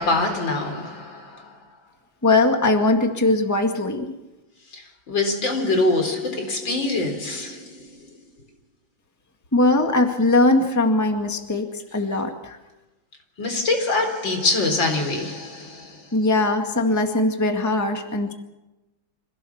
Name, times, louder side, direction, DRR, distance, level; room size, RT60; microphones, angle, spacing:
voice 1, 0.0-1.6 4.7-8.2 13.4-16.1, left 2 dB, 70° left, 4.7 m, -24 dB
voice 2, 2.2-4.1 9.5-12.6 16.1-18.3, left 2 dB, 10° left, 1.9 m, -20 dB
26.5 x 17.0 x 7.3 m
omnidirectional pair, 2.2 m